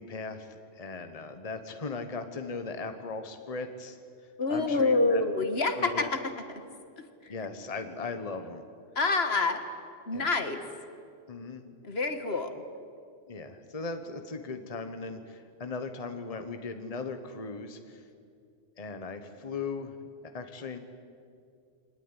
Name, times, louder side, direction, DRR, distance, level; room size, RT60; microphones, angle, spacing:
voice 1, 0.0-4.0 4.5-5.2 5.7-6.1 7.3-8.6 10.1-10.3 11.3-11.7 13.3-18.0 18.8-20.0 20.2-20.8, left 4 dB, 30° left, 7 dB, 1.3 m, -38 dB
voice 2, 4.4-6.2 6.5-6.6 7.2-7.3 9.0-9.6 10.1-10.6 11.8-12.6, left 3 dB, 55° left, 8 dB, 1.8 m, -27 dB
23.5 x 19.0 x 9.9 m, 2.4 s
omnidirectional pair, 1.3 m